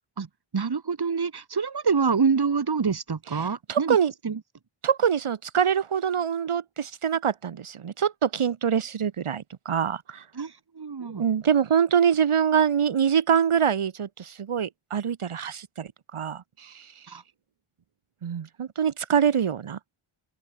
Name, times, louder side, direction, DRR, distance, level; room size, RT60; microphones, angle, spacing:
voice 1, 0.5-4.0 4.2-4.4 10.3-11.2 17.1-17.2, right 5 dB, 50° right, 4.2 m, -26 dB
voice 2, 3.7-4.1 4.8-10.2 11.0-16.9 18.2-19.8, right 8 dB, 80° right, 4.1 m, -25 dB
open air
wide cardioid pair, 95°, 49 cm